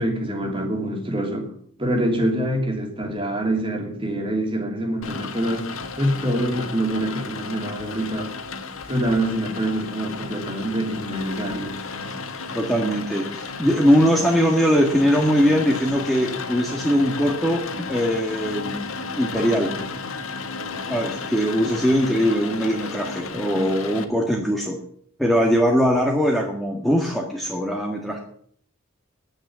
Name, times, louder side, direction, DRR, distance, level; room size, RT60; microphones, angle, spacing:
voice 1, 0.0-1.5 1.8-5.7 6.0-8.3 8.9-11.8, right 1 dB, 25° right, 2 dB, 2.8 m, -25 dB
Rain, 5.0-24.0, left 4 dB, 80° left, 1.6 m, -33 dB
voice 2, 12.5-18.8 19.2-19.7 20.9-24.8 25.2-28.2, equal, ahead, -1 dB, 1.7 m, -21 dB
10.0 x 9.0 x 9.6 m, 0.62 s
head